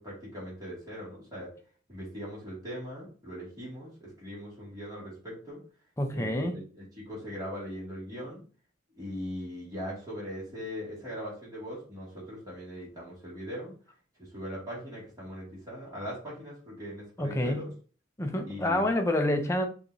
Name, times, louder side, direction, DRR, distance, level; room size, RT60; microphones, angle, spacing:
voice 1, 0.0-1.5 1.9-5.6 6.1-8.4 9.0-13.7 14.2-17.7 18.5-18.9, equal, 20° right, 2.3 m, -40 dB
voice 2, 6.0-6.6 17.2-17.7 18.2-19.6, left 1 dB, 15° left, 0.6 m, -28 dB
5.7 x 3.0 x 2.7 m
head